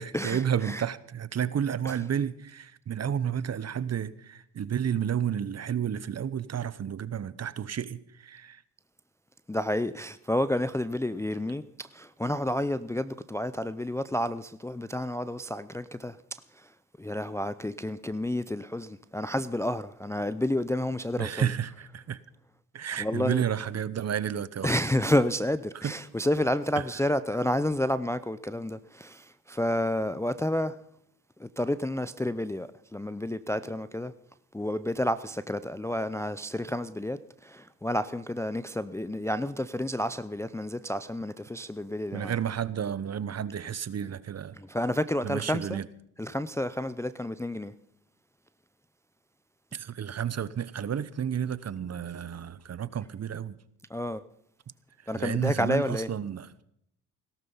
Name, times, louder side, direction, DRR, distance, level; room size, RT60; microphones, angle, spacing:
voice 1, 0.0-8.6 21.2-22.2 22.7-24.8 25.7-25.9 26.8-26.9 42.1-44.6 45.2-45.9 49.7-53.6 55.0-56.5, right 8 dB, 40° right, 0.9 m, -31 dB
voice 2, 9.5-16.2 17.0-21.5 23.0-23.4 24.6-30.7 31.4-34.1 34.5-37.2 37.4-42.4 44.6-45.8 46.2-47.7 53.9-54.2 55.1-56.1, left 1 dB, 5° left, 0.5 m, -30 dB
17.5 x 12.5 x 5.6 m
supercardioid pair, 70°, 41 cm